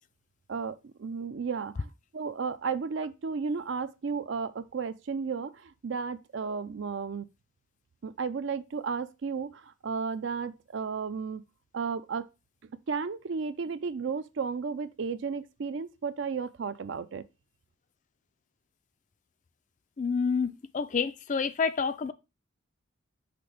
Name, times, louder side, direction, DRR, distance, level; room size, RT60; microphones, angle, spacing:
voice 1, 0.5-1.9 2.1-7.3 8.0-11.4 11.7-12.3 12.9-17.3, right 5 dB, 60° right, 0.4 m, -33 dB
voice 2, 20.0-22.1, left 5 dB, 35° left, 0.3 m, -28 dB
5.9 x 3.3 x 5.1 m
head